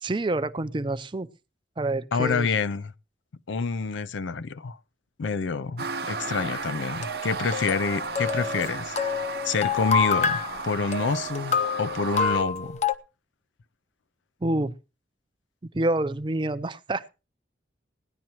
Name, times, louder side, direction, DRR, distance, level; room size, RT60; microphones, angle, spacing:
voice 1, 0.0-1.3 1.8-2.5 14.4-14.7 15.6-17.1, right 2 dB, 25° right, 0.5 m, -27 dB
voice 2, 2.1-2.9 3.5-4.8 5.2-9.0 9.4-12.8, left 5 dB, 90° left, 0.5 m, -27 dB
sound 1, 5.8-12.4, right 4 dB, 55° right, 0.8 m, -34 dB
sound 2, 6.5-12.9, left 5 dB, 40° left, 0.7 m, -28 dB
18.5 x 10.5 x 3.0 m
head